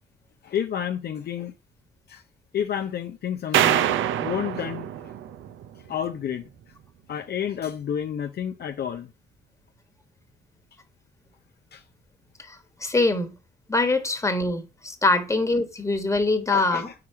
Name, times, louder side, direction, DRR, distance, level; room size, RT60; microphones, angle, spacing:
voice 1, 0.4-1.5 2.1-2.2 2.5-5.1 5.8-6.5 7.1-9.1 11.7-11.8 16.5-16.9, left 9 dB, 55° left, 0.6 m, -30 dB
sound 1, 3.5-5.9, right 11 dB, 80° right, 0.6 m, -25 dB
voice 2, 12.5-13.3 13.7-16.9, left 2 dB, 15° left, 1.4 m, -23 dB
4.8 x 4.8 x 5.6 m
cardioid pair, 90°, 20 cm